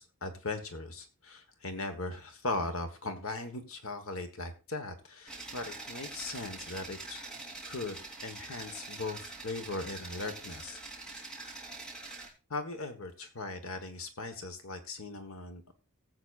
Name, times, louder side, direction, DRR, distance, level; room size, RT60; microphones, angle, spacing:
voice 1, 0.0-7.3 7.7-10.8 12.5-15.7, left 2 dB, 70° left, 7 dB, 1.4 m, -39 dB
sound 1, 5.3-12.3, right 3 dB, 5° left, 3.3 m, -44 dB
19.5 x 7.9 x 2.5 m, 0.32 s
head